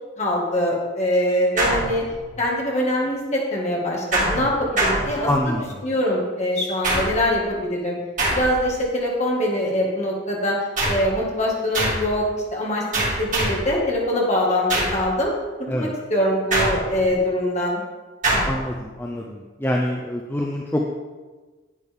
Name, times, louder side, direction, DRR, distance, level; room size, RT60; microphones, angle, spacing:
voice 1, 0.2-2.1 2.4-5.5 5.8-8.0 8.3-10.6 10.8-15.3 15.7-17.8, left 1 dB, 35° left, -3 dB, 2.0 m, -23 dB
sound 1, 1.6-2.4 4.1-5.6 6.8-7.4 8.2-8.8 10.8-11.2 11.7-12.2 12.9-13.7 14.7-15.1 16.5-17.1 18.2-18.7, right 1 dB, 40° right, 2.5 m, -24 dB
voice 2, 5.2-5.9 15.7-15.9 18.5-20.9, left 1 dB, 10° left, -1 dB, 0.6 m, -25 dB
11.0 x 8.3 x 3.6 m, 1.3 s
head